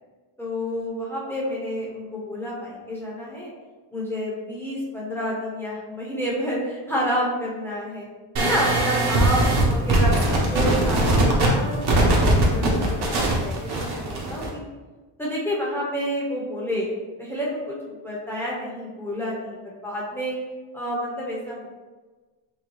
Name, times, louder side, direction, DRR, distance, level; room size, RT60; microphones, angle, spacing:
voice 1, 0.4-3.5 3.9-8.1 8.4-14.6 15.2-16.9 17.2-19.6 19.8-20.3 20.7-21.7, equal, 5° left, -5 dB, 1.0 m, -29 dB
sound 1, 8.4-14.5, right 1 dB, 55° right, 1.1 m, -20 dB
6.4 x 2.2 x 3.2 m, 1.3 s
wide cardioid pair, 165°, 49 cm